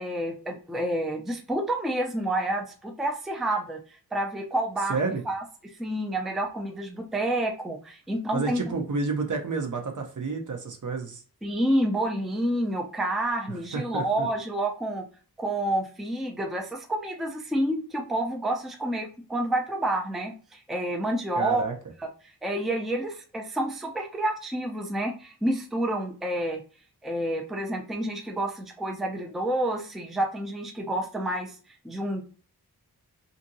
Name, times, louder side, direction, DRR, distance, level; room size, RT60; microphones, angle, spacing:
voice 1, 0.0-3.8 4.1-5.0 5.3-5.4 5.8-8.8 11.4-15.0 15.4-21.6 22.4-26.6 27.0-31.6 31.8-32.3, right 1 dB, ahead, 2 dB, 0.4 m, -29 dB
voice 2, 4.9-5.2 8.3-11.2 13.5-14.3 21.4-21.7, right 4 dB, 55° right, 3 dB, 0.7 m, -30 dB
2.7 x 2.6 x 2.6 m, 0.37 s
wide cardioid pair, 95°, 38 cm